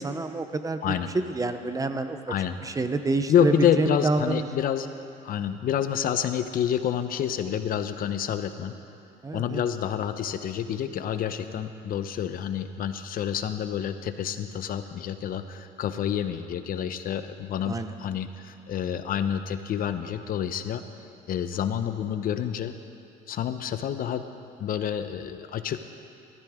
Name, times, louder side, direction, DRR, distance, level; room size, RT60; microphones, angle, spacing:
voice 1, 0.0-2.3 2.6-4.5 9.2-9.6 17.6-17.9, right 3 dB, 20° right, 9 dB, 0.7 m, -28 dB
voice 2, 0.8-1.1 2.3-2.6 3.3-4.9 5.2-8.7 9.3-20.8 21.3-22.7 23.3-24.2 24.6-25.8, left 9 dB, 60° left, 10 dB, 0.8 m, -28 dB
20.5 x 14.0 x 3.6 m, 2.5 s
cardioid pair, 110°, 17 cm